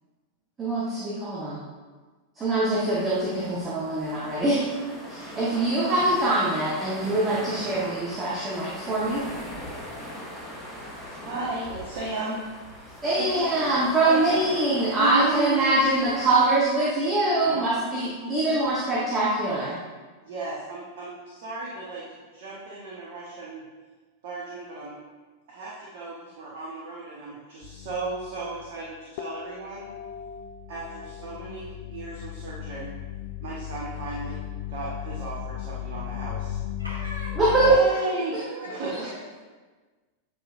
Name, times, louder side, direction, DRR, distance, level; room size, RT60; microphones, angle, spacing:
voice 1, 0.6-1.6 2.3-4.6 5.1-9.3 13.0-19.8 37.4-38.0 38.3-39.0, right 2 dB, 20° right, -6 dB, 1.3 m, -24 dB
sound 1, 2.7-16.5, left 1 dB, 5° right, 1.7 m, -41 dB
voice 2, 11.2-12.4 12.7-13.2 14.0-14.3 15.0-16.2 17.4-17.6 18.2-18.3 20.2-23.6 24.2-25.0 25.5-29.9 30.7-32.9 33.4-34.4 34.7-36.6 37.6-38.3 38.7-39.1, right 3 dB, 50° right, -5 dB, 1.2 m, -34 dB
sound 2, 27.6-28.8 29.2-37.8, left 12 dB, 50° left, 0.4 m, -36 dB
voice 3, 36.8-39.4, equal, 80° right, -9 dB, 1.6 m, -40 dB
8.9 x 5.1 x 2.5 m, 1.3 s
figure-of-eight pair, 90°, 0 cm